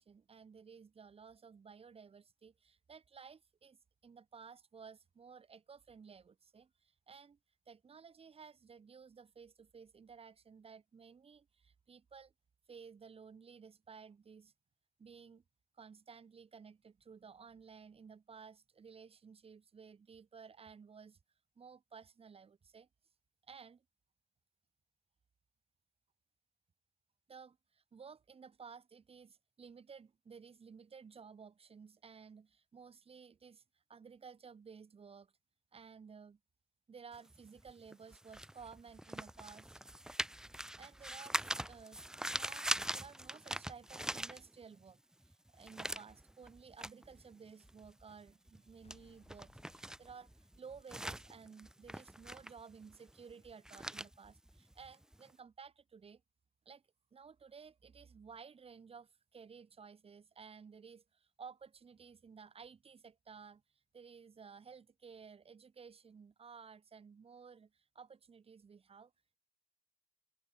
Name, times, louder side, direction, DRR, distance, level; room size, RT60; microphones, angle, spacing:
voice 1, 0.0-7.4 7.7-12.3 12.7-14.5 15.0-15.4 15.7-21.2 21.6-22.9 23.5-23.8 27.3-35.3 35.7-36.4 36.9-39.7 40.5-56.2 56.6-56.8 57.1-63.6 63.9-69.1, right 6 dB, 45° right, 3.0 m, -55 dB
sound 1, 37.1-44.9 45.2-55.3, right 1 dB, 5° right, 0.6 m, -43 dB
sound 2, 48.5-51.3, left 6 dB, 45° left, 5.6 m, -69 dB
open air
cardioid pair, 115°, 14 cm